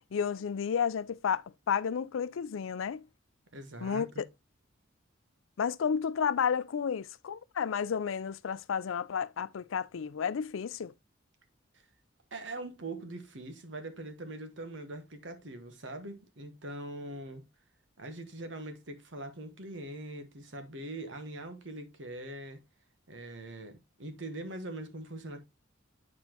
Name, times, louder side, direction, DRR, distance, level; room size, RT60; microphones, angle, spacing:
voice 1, 0.1-3.1 3.8-4.1 5.6-10.9, left 7 dB, 85° left, 0.4 m, -32 dB
voice 2, 3.5-4.2 11.7-11.8 12.3-17.4 18.0-22.6 23.1-25.4, right 1 dB, 65° right, 1.2 m, -42 dB
8.8 x 4.3 x 2.9 m
head